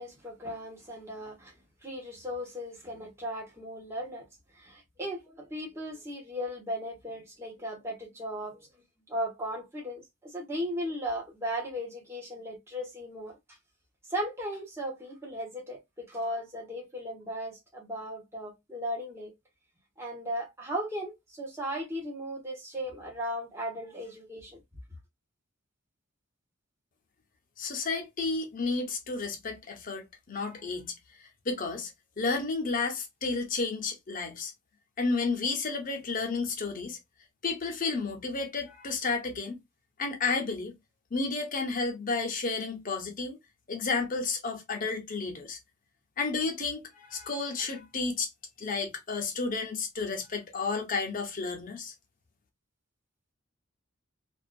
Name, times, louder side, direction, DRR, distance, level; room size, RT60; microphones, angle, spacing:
voice 1, 0.0-1.5 1.8-4.3 4.6-8.6 9.1-13.4 14.1-19.3 20.0-24.6, equal, 15° right, 1.0 m, -36 dB
voice 2, 27.6-30.9 31.5-31.9 32.2-34.5 35.0-37.0 37.4-39.6 40.0-40.7 41.1-43.4 43.7-45.6 46.2-48.3 48.6-51.9, left 4 dB, 40° left, 0.7 m, -32 dB
2.5 x 2.4 x 2.4 m
head